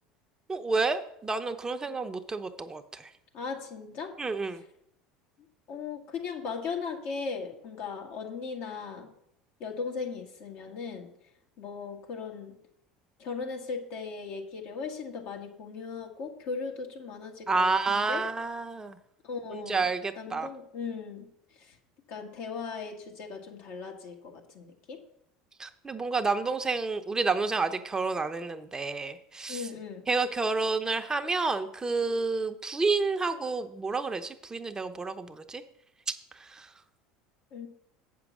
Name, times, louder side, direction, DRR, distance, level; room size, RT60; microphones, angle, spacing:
voice 1, 0.5-3.1 4.2-4.6 17.5-19.0 19.5-20.5 25.6-29.7 30.1-35.6 36.4-36.7, right 4 dB, 20° right, 8 dB, 0.7 m, -30 dB
voice 2, 3.3-4.1 5.7-9.1 9.6-11.1 11.6-12.6 13.2-18.3 19.2-19.9 20.2-21.3 21.6-21.7 22.1-25.0 29.5-30.1 37.5-37.7, left 5 dB, 60° left, 2 dB, 1.9 m, -38 dB
8.2 x 6.3 x 6.1 m, 0.74 s
hypercardioid pair, 80°, 3 cm